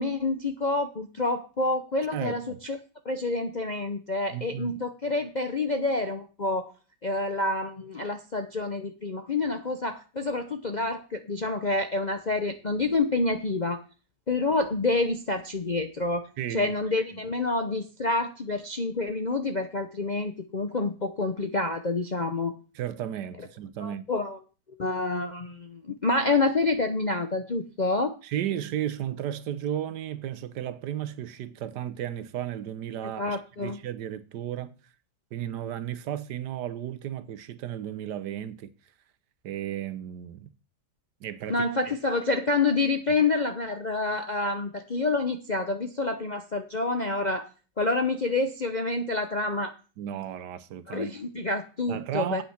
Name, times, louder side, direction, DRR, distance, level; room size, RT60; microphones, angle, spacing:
voice 1, 0.0-2.8 3.0-6.7 7.0-13.8 14.3-16.2 16.5-22.5 23.8-24.4 24.8-28.1 33.2-33.8 41.5-47.5 47.8-49.7 50.9-52.4, left 3 dB, 45° left, 0.5 m, -28 dB
voice 2, 2.1-2.6 4.3-4.8 16.4-16.7 17.1-17.2 22.7-24.0 28.2-34.8 35.3-38.7 39.4-40.5 41.2-41.7 50.0-51.1 51.9-52.4, right 11 dB, 75° right, 1.4 m, -34 dB
8.6 x 8.4 x 5.8 m
omnidirectional pair, 1.8 m